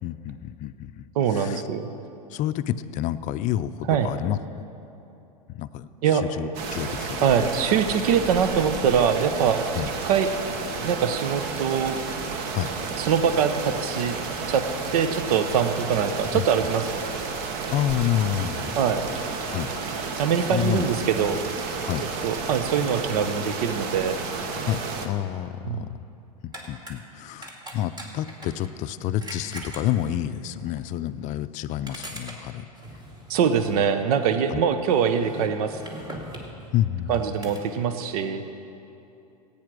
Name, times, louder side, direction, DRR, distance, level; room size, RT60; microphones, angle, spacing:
voice 1, 0.0-1.0 1.3-1.6 2.3-4.6 5.5-7.5 9.8-9.9 12.5-12.8 16.3-16.5 17.7-18.7 19.5-19.7 20.0-20.1 20.5-20.9 21.8-22.1 24.7-26.0 26.4-32.7 34.5-34.6 36.7-37.3, left 12 dB, 40° left, 12 dB, 0.5 m, -29 dB
voice 2, 1.2-1.9 3.9-4.1 6.0-6.2 7.2-9.6 10.0-10.3 10.8-12.0 13.0-14.2 14.5-14.6 14.9-17.1 18.7-19.1 20.2-21.4 22.2-24.2 25.6-25.9 33.3-35.8 37.1-38.4, right 7 dB, 65° right, 9 dB, 0.9 m, -23 dB
sound 1, 6.5-25.1, right 4 dB, 50° right, 1.3 m, -32 dB
sound 2, 26.5-26.9 27.4-28.7 29.2-30.3 30.8-30.9 31.2-31.3 31.8-33.9 34.2-34.3 34.8-36.7 37.1-37.6, right 1 dB, 20° right, 2.3 m, -41 dB
15.0 x 9.0 x 6.2 m, 2.8 s
hypercardioid pair, 110°, 20 cm